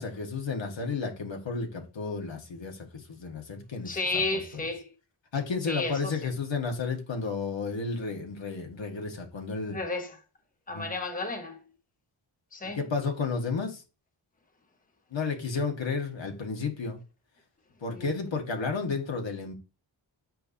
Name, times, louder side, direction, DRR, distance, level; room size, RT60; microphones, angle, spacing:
voice 1, 0.0-2.8 3.1-4.2 5.3-9.8 10.7-10.9 12.8-13.8 15.1-17.0 17.8-19.5, left 4 dB, 65° left, 1.5 m, -32 dB
voice 2, 3.8-4.9 5.7-6.2 9.7-10.2 10.7-11.7 12.5-12.8 17.9-18.1, left 3 dB, 15° left, 1.0 m, -32 dB
7.8 x 4.8 x 2.7 m
cardioid pair, 65°, 49 cm